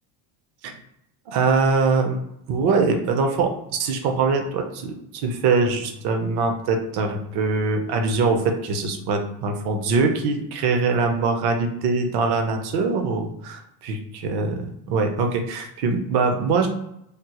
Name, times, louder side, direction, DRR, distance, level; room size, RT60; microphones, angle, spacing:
voice 1, 1.3-2.2 2.5-14.0 14.3-16.7, right 4 dB, 55° right, 4 dB, 0.8 m, -23 dB
3.4 x 2.0 x 2.9 m, 0.79 s
supercardioid pair, 95°, 46 cm